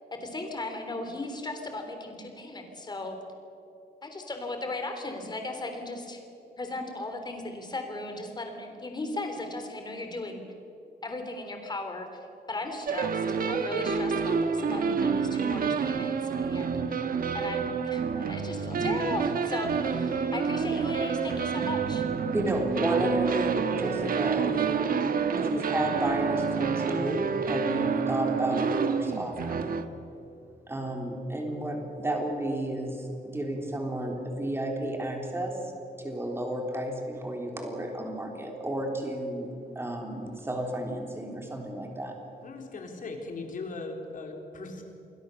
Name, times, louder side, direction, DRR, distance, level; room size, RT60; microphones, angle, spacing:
voice 1, 0.2-3.2 4.0-6.2 6.6-10.4 11.0-12.1 12.5-17.0 17.3-22.1, left 2 dB, 25° left, 5 dB, 3.5 m, -37 dB
sound 1, 12.9-29.9, right 6 dB, 60° right, 1.3 m, -28 dB
voice 2, 22.3-24.9 25.4-29.6 30.7-35.6 36.0-42.1, right 1 dB, 15° right, 1 dB, 3.7 m, -32 dB
voice 3, 42.4-44.8, left 3 dB, 55° left, 3 dB, 3.8 m, -38 dB
28.5 x 21.5 x 6.9 m, 2.8 s
wide cardioid pair, 175°, 17 cm